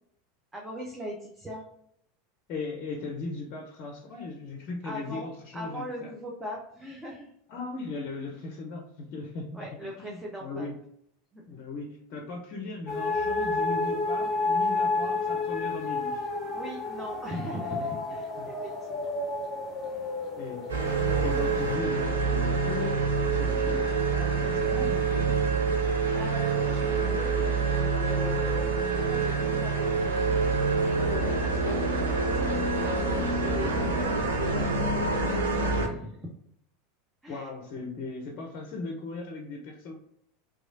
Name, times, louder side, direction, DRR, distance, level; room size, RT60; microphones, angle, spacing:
voice 1, 0.5-1.6 4.8-7.3 9.5-10.7 11.3-11.6 16.5-19.1 19.9-20.1 25.7-30.8 31.1-31.8 32.8-35.3 35.7-36.3 37.2-37.5, equal, 15° right, -2 dB, 0.6 m, -40 dB
voice 2, 2.5-6.1 7.5-9.7 10.0-10.8 11.5-16.2 18.4-18.5 20.4-25.3 37.3-39.9, left 3 dB, 50° left, 1 dB, 0.5 m, -38 dB
sound 1, 12.9-21.7, left 3 dB, 20° left, 0.8 m, -30 dB
sound 2, 20.7-35.9, right 4 dB, 80° right, 0.5 m, -26 dB
3.0 x 2.3 x 2.6 m, 0.74 s
hypercardioid pair, 85°, 0 cm